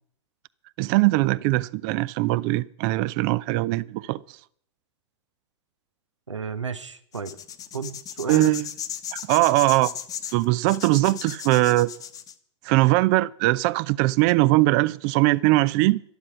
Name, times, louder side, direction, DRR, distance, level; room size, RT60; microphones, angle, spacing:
voice 1, 0.8-4.2 8.3-8.6 9.1-9.9 10.3-11.9 12.6-16.0, right 19 dB, 40° right, 0.6 m, -21 dB
voice 2, 6.3-7.4 7.7-8.6, right 5 dB, 85° right, 1.2 m, -32 dB
sound 1, 7.1-12.3, left 9 dB, 25° left, 1.1 m, -36 dB
12.5 x 11.5 x 6.1 m
figure-of-eight pair, 105°, 15 cm